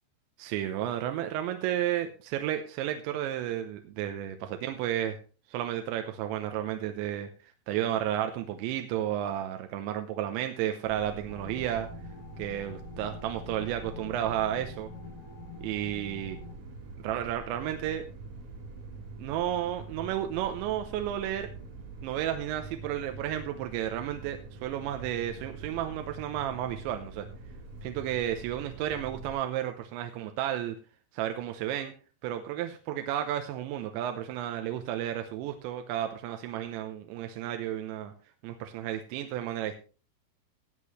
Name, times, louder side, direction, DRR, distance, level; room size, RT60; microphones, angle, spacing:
voice 1, 0.4-5.2 5.5-7.3 7.7-11.9 12.4-14.9 15.6-16.4 17.0-18.0 19.2-21.5 22.0-27.3 27.8-30.8 31.1-31.9 32.2-38.1 38.4-39.8, right 11 dB, 80° right, 6 dB, 2.8 m, -32 dB
sound 1, 10.8-29.3, right 3 dB, 50° right, 2.6 m, -45 dB
sound 2, 11.3-16.6, left 10 dB, 80° left, 3.3 m, -48 dB
16.5 x 8.3 x 3.2 m, 0.36 s
omnidirectional pair, 5.8 m